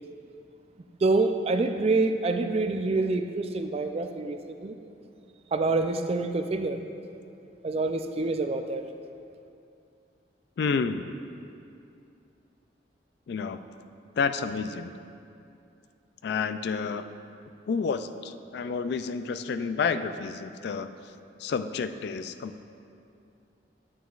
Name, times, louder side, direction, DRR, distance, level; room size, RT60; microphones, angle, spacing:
voice 1, 1.0-4.8 5.5-6.8 7.6-8.8, right 3 dB, 35° right, 7 dB, 0.4 m, -26 dB
voice 2, 10.6-11.1 13.3-13.6 14.2-14.9 16.2-17.1 17.7-20.9 21.4-22.6, left 5 dB, 60° left, 10 dB, 0.3 m, -30 dB
9.2 x 8.8 x 2.4 m, 2.6 s
head